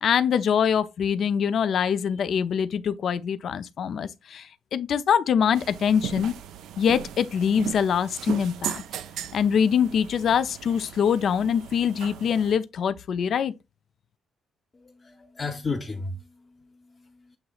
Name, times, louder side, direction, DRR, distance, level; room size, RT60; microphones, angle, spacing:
voice 1, 0.0-6.3 6.8-8.8 9.3-13.5, left 7 dB, 60° left, 0.4 m, -24 dB
sound 1, 5.5-12.5, right 9 dB, 85° right, 0.4 m, -37 dB
voice 2, 14.7-17.4, left 3 dB, 30° left, 0.7 m, -35 dB
7.7 x 2.9 x 2.3 m
cardioid pair, 90°, 0 cm